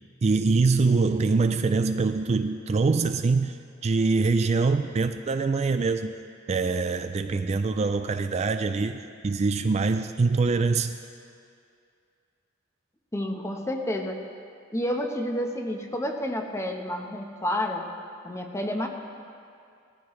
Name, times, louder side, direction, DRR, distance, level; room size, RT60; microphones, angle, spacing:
voice 1, 0.2-3.6 3.8-6.1 6.5-11.0, right 4 dB, 35° right, 8 dB, 0.3 m, -24 dB
voice 2, 13.1-14.2 14.7-17.9 18.2-18.9, left 1 dB, 15° left, 3 dB, 1.0 m, -30 dB
18.5 x 14.5 x 3.2 m, 2.4 s
head